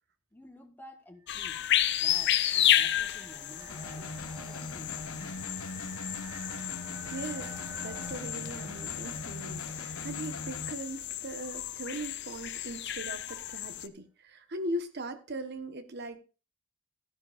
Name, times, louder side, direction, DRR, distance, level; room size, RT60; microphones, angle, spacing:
voice 1, 0.3-1.6 1.9-2.4 2.7-5.5, equal, 10° left, 1.4 m, -53 dB
sound 1, 1.2-12.0, right 3 dB, 15° right, 0.9 m, -51 dB
sound 2, 1.3-13.9, left 12 dB, 55° left, 0.6 m, -32 dB
sound 3, 3.7-10.7, left 3 dB, 75° left, 1.0 m, -41 dB
voice 2, 7.1-16.2, right 1 dB, 50° right, 1.1 m, -39 dB
13.5 x 10.5 x 2.5 m
head